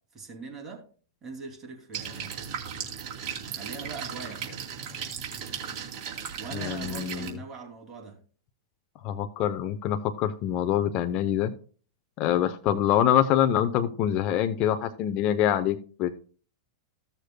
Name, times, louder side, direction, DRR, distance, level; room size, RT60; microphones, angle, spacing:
voice 1, 0.1-0.8 1.2-2.4 3.5-4.6 6.4-8.2, right 4 dB, 20° right, 0 dB, 2.6 m, -41 dB
sound 1, 1.9-7.3, right 7 dB, 40° right, 2.5 m, -36 dB
voice 2, 6.5-7.3 9.0-11.5 12.2-16.3, left 10 dB, 40° left, 8 dB, 0.6 m, -25 dB
15.5 x 6.7 x 2.2 m, 0.40 s
hypercardioid pair, 125°, 2 cm